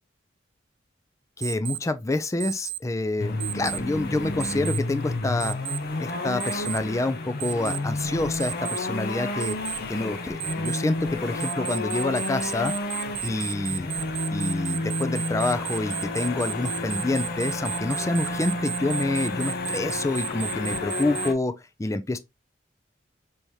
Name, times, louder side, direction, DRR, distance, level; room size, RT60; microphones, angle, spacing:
voice 1, 1.4-5.6 6.0-9.6 9.9-12.7 13.2-13.9 14.3-21.5 21.8-22.2, left 2 dB, 15° left, 0.4 m, -27 dB
Alarm, 1.4-1.8 2.4-2.8 3.4-3.8 4.4-4.8 5.4-5.8 6.4-6.8 7.4-7.8 8.4-8.8 9.4-9.8 10.4-10.8 11.4-21.3, right 16 dB, 80° right, 0.3 m, -33 dB
sound 1, 3.2-21.3, left 2 dB, 55° left, 0.6 m, -31 dB
3.5 x 2.8 x 3.0 m
head